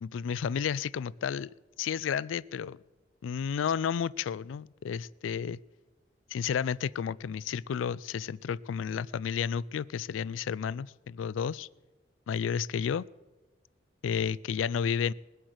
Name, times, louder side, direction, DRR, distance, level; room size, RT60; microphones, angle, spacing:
voice 1, 0.0-1.5 1.8-2.8 3.2-5.6 6.3-11.7 12.3-13.1 14.0-15.1, left 7 dB, 85° left, 22 dB, 0.3 m, -31 dB
20.5 x 7.9 x 6.3 m, 1.2 s
head